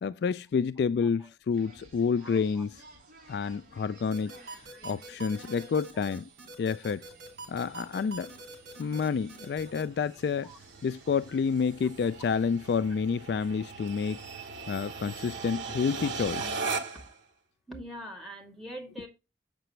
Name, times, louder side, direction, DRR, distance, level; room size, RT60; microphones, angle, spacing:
voice 1, 0.0-2.7 3.3-4.3 4.8-6.3 6.6-7.0 7.5-8.3 8.8-10.5 10.8-14.2 14.7-16.4, left 6 dB, 65° left, 0.3 m, -29 dB
sound 1, 1.5-12.7, right 2 dB, 50° right, 3.7 m, -56 dB
voice 2, 2.2-2.7 6.8-6.9 10.4-10.6 16.0-16.1 16.4-16.5 17.7-19.1, right 1 dB, ahead, 2.2 m, -43 dB
sound 2, 4.1-9.8, right 3 dB, 75° right, 4.9 m, -44 dB
sound 3, 7.0-17.2, right 4 dB, 90° right, 1.1 m, -40 dB
7.9 x 6.7 x 3.1 m
head